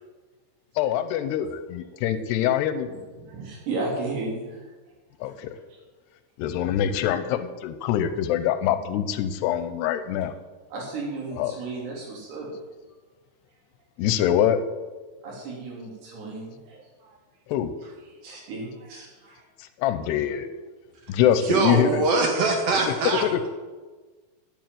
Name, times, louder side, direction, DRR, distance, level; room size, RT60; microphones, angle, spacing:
voice 1, 0.8-2.9 5.2-5.6 6.4-10.3 11.4-11.6 14.0-14.6 17.5-17.7 19.6-20.5 21.1-22.1 23.3-23.4, left 10 dB, 85° left, 11 dB, 2.9 m, -24 dB
voice 2, 3.1-4.7 5.3-5.4 10.7-12.5 15.2-17.2 17.8-19.4, right 3 dB, 85° right, -3 dB, 5.3 m, -34 dB
voice 3, 21.4-23.2, right 3 dB, 50° right, 2 dB, 2.3 m, -22 dB
9.7 x 7.6 x 9.2 m, 1.3 s
omnidirectional pair, 4.7 m